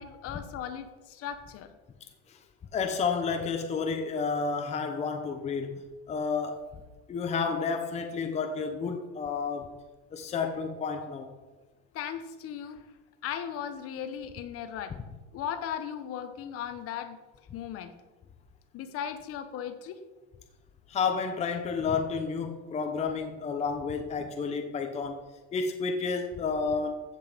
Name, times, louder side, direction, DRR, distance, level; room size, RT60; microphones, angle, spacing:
voice 1, 0.0-1.7 11.9-12.8 13.2-15.0 15.3-17.2 17.5-17.9 18.7-20.0, left 9 dB, 45° left, 9 dB, 1.2 m, -37 dB
voice 2, 2.7-5.8 6.1-6.7 7.1-9.7 10.1-11.3 20.9-25.2 25.5-27.0, left 5 dB, 20° left, 5 dB, 0.9 m, -31 dB
15.0 x 8.1 x 5.2 m, 1.2 s
cardioid pair, 165°, 33 cm